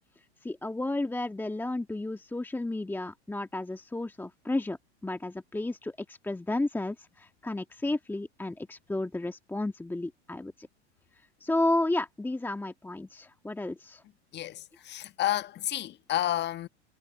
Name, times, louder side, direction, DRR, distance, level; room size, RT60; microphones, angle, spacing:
voice 1, 0.4-4.8 5.0-10.7 11.4-14.0, left 2 dB, 5° left, 1.7 m, -32 dB
voice 2, 14.3-16.7, left 13 dB, 30° left, 1.4 m, -31 dB
figure-of-eight pair, 90°, 34 cm